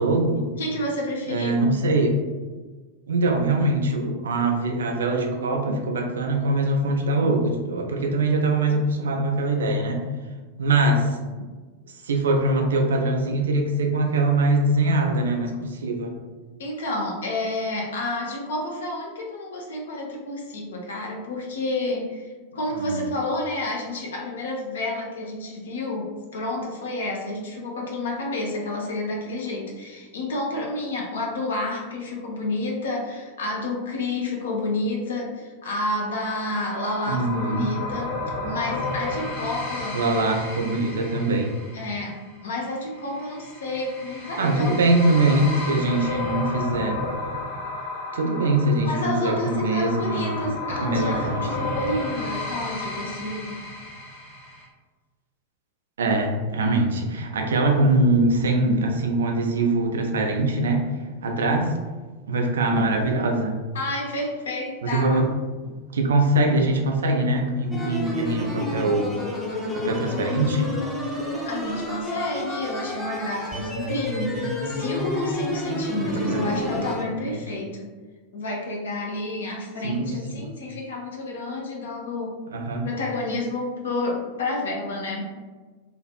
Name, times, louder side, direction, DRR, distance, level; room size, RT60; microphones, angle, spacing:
voice 1, 0.0-0.5 1.3-2.2 3.1-10.1 10.6-11.2 12.0-16.1 22.9-23.0 37.1-37.7 39.9-41.5 44.4-47.0 48.1-50.4 50.8-51.8 56.0-60.9 61.2-61.7 62.3-63.6 64.8-65.3 65.6-69.2 69.7-70.7 76.0-77.4 79.8-80.4 82.5-82.9, right 2 dB, 65° right, 2 dB, 0.4 m, -23 dB
voice 2, 0.6-1.8 16.6-40.0 41.7-44.8 48.8-53.6 63.7-65.2 71.4-77.9 78.3-82.4 82.8-85.2, left 2 dB, 65° left, -1 dB, 0.6 m, -30 dB
sound 1, 36.0-54.6, left 2 dB, 40° left, 1.3 m, -33 dB
sound 2, 67.7-77.0, left 1 dB, 5° left, 0.6 m, -30 dB
2.5 x 2.4 x 2.3 m, 1.3 s
figure-of-eight pair, 90°, 0 cm